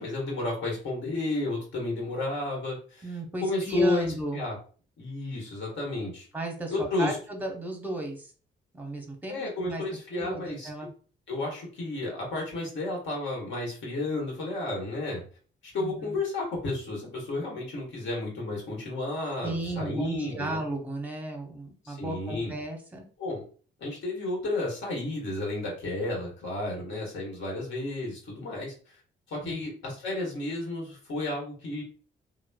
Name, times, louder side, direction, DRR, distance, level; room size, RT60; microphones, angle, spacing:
voice 1, 0.0-3.1 3.4-4.1 4.3-4.6 5.0-6.3 6.7-7.2 9.3-10.7 11.3-15.2 15.6-20.6 21.8-22.5 23.2-23.4 23.8-29.0 29.3-31.8, left 2 dB, 70° left, -2 dB, 1.3 m, -32 dB
voice 2, 3.0-4.4 6.3-8.3 8.7-9.8 10.1-10.9 15.8-16.2 19.4-23.0 29.4-29.5, right 2 dB, 10° right, 2 dB, 0.7 m, -34 dB
3.0 x 2.1 x 2.2 m, 0.41 s
cardioid pair, 90°, 20 cm